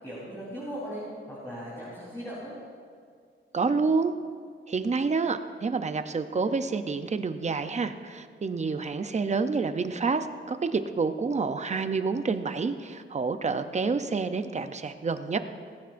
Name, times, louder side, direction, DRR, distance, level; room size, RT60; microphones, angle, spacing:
voice 1, 0.0-1.0 1.3-2.6, equal, 15° left, -9 dB, 3.8 m, -38 dB
voice 2, 3.5-4.1 4.7-15.4, right 4 dB, 35° right, 9 dB, 0.6 m, -28 dB
19.5 x 15.0 x 2.6 m, 2.1 s
wide cardioid pair, 160°, 21 cm